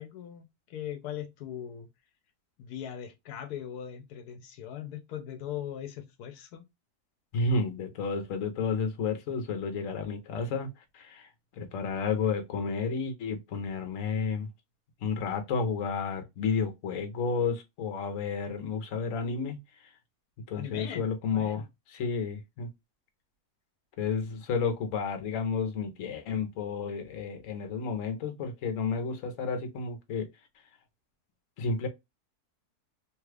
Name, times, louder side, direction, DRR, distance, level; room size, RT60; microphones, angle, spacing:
voice 1, 0.0-1.9 2.6-6.6 20.5-21.0 21.3-21.6, left 10 dB, 85° left, 1.1 m, -40 dB
voice 2, 7.3-10.7 10.9-11.3 11.6-14.5 15.0-19.6 20.5-21.6 21.9-22.7 24.0-30.3 31.6-31.9, left 5 dB, 60° left, 1.1 m, -31 dB
3.1 x 2.3 x 3.2 m
omnidirectional pair, 1.6 m